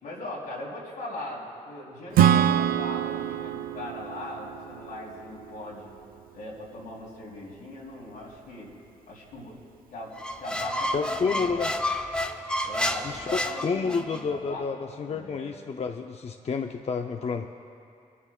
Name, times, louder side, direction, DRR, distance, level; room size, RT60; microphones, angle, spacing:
voice 1, 0.0-5.9 6.3-8.7 9.1-9.6 9.9-10.1 10.4-11.7 12.6-15.5, left 2 dB, 90° left, -5 dB, 3.4 m, -40 dB
Acoustic guitar / Strum, 2.1-5.7, right 10 dB, 75° right, 0.4 m, -25 dB
Squeak, 10.2-14.2, left 1 dB, 5° left, 0.8 m, -30 dB
voice 2, 10.9-11.7 13.0-13.3 13.6-17.5, left 5 dB, 45° left, 5 dB, 0.6 m, -30 dB
26.5 x 11.0 x 2.4 m, 2.4 s
supercardioid pair, 55°, 15 cm